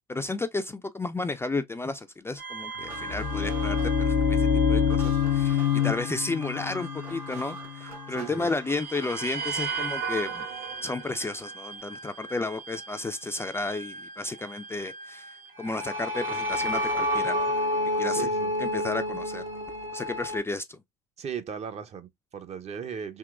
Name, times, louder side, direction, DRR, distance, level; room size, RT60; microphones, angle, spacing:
voice 1, 0.0-10.5 10.8-17.5 18.0-18.3 18.6-19.4 19.9-20.8, left 3 dB, 15° left, 0.4 m, -32 dB
sound 1, 2.4-8.3 8.7-20.4, equal, 70° right, 1.2 m, -33 dB
sound 2, 2.7-9.3, right 3 dB, 90° right, 1.4 m, -44 dB
sound 3, 2.8-8.7, left 7 dB, 75° left, 0.6 m, -26 dB
voice 2, 8.1-8.5 18.1-18.5 21.2-23.2, right 7 dB, 40° right, 0.6 m, -37 dB
3.6 x 2.8 x 2.2 m
hypercardioid pair, 65°, 18 cm